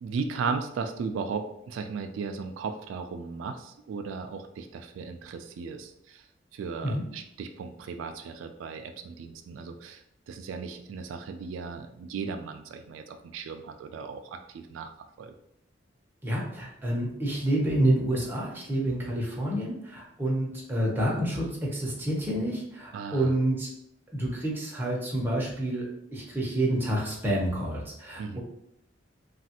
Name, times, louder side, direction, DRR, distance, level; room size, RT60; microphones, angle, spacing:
voice 1, 0.0-6.2 6.5-14.9 15.2-15.3 22.9-23.4 28.2-28.4, right 5 dB, 90° right, 7 dB, 0.3 m, -36 dB
voice 2, 16.2-23.7 24.1-28.4, right 1 dB, 10° right, -4 dB, 0.7 m, -28 dB
3.2 x 2.3 x 2.8 m, 0.77 s
head